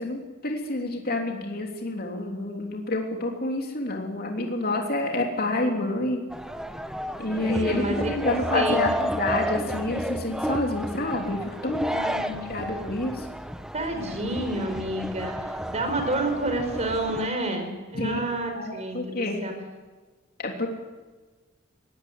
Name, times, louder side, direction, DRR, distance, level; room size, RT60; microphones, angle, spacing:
voice 1, 0.0-6.2 7.2-11.9 12.5-13.1 17.9-18.2 18.5-19.5 20.4-20.7, left 2 dB, 50° left, 1 dB, 3.3 m, -28 dB
sound 1, 6.3-17.3, equal, 5° right, 1.1 m, -31 dB
voice 2, 7.3-9.2 11.8-12.5 13.7-19.5, right 1 dB, 35° right, 5 dB, 5.1 m, -30 dB
20.5 x 17.5 x 9.9 m, 1.3 s
head